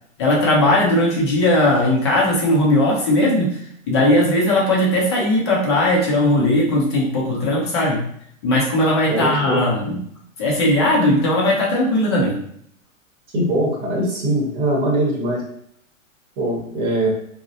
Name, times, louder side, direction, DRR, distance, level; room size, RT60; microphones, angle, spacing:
voice 1, 0.2-3.6 3.9-8.0 8.4-10.0 10.4-12.4, left 1 dB, 20° left, -4 dB, 0.3 m, -18 dB
voice 2, 9.1-9.6 13.3-15.4 16.4-17.1, right 1 dB, 40° right, -3 dB, 0.9 m, -21 dB
2.4 x 2.0 x 2.6 m, 0.67 s
hypercardioid pair, 140°, 39 cm